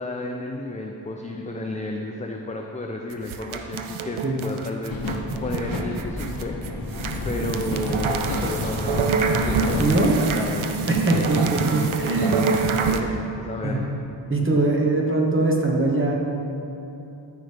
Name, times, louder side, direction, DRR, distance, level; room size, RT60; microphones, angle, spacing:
voice 1, 0.0-6.6 7.2-9.0 9.4-13.9, left 2 dB, 15° left, 1 dB, 0.4 m, -32 dB
sound 1, 3.1-13.0, right 5 dB, 85° right, 0.6 m, -27 dB
sound 2, 4.9-9.9, left 2 dB, 45° left, 0.8 m, -30 dB
voice 2, 9.7-10.2 10.9-11.4 11.7-12.4 13.6-13.8 14.3-16.2, right 2 dB, 25° right, -1 dB, 1.1 m, -22 dB
13.0 x 5.1 x 3.4 m, 2.9 s
wide cardioid pair, 125°, 47 cm